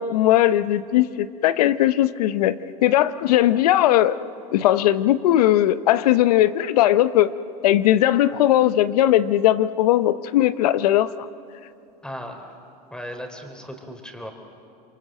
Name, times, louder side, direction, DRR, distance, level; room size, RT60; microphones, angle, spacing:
voice 1, 0.0-4.1 4.5-7.3 7.6-11.3, left 13 dB, 80° left, 14 dB, 0.8 m, -19 dB
voice 2, 12.0-12.5 12.9-14.3, equal, 5° left, 5 dB, 3.7 m, -36 dB
26.5 x 23.0 x 7.7 m, 2.6 s
supercardioid pair, 110°, 19 cm